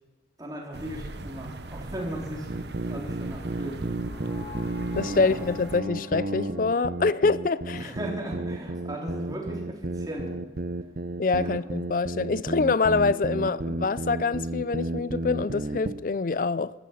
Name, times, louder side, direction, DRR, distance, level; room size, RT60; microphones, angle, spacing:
voice 1, 0.4-2.5 2.8-3.8 5.0-5.4 7.7-10.3 11.3-11.6, right 1 dB, 20° right, 3.5 m, -36 dB
sound 1, 0.7-5.8, right 2 dB, 75° right, 1.1 m, -40 dB
sound 2, 2.5-16.0, right 2 dB, 55° right, 0.8 m, -32 dB
sound 3, 2.7-8.8, left 2 dB, 10° left, 6.3 m, -48 dB
voice 2, 5.0-7.9 11.2-16.7, left 4 dB, 50° left, 0.4 m, -25 dB
16.0 x 13.5 x 5.7 m
head